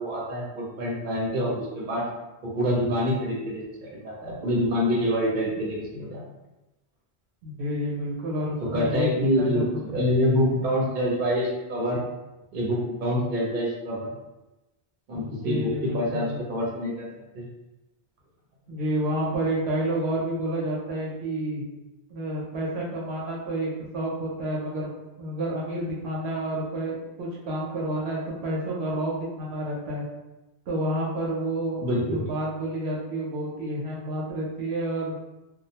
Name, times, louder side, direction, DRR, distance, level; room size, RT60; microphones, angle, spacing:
voice 1, 0.0-2.1 2.4-6.2 8.6-12.0 12.5-14.1 15.1-17.1 17.3-17.5 31.8-32.2, equal, 50° right, -4 dB, 0.8 m, -26 dB
voice 2, 7.4-9.1 9.4-9.6 15.1-16.4 18.7-21.7 22.1-24.9 25.2-30.1 30.7-35.2, right 1 dB, 80° right, -4 dB, 0.9 m, -29 dB
2.3 x 2.1 x 2.8 m, 1.0 s
omnidirectional pair, 1.1 m